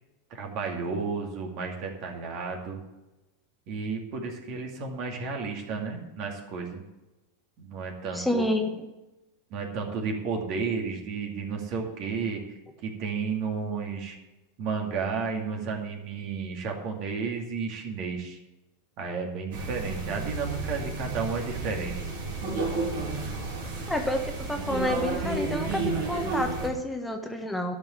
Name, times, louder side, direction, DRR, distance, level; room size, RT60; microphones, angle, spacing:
voice 1, 0.3-2.8 3.7-6.8 7.6-8.4 9.5-12.4 12.8-14.2 14.6-18.4 19.0-22.1, right 5 dB, 50° right, 2 dB, 2.5 m, -32 dB
voice 2, 8.1-8.7 23.9-27.7, left 1 dB, 5° left, 3 dB, 1.3 m, -29 dB
sound 1, 19.5-26.7, right 3 dB, 65° right, 3.5 m, -31 dB
12.0 x 5.6 x 8.5 m, 1.0 s
hypercardioid pair, 95°, 0 cm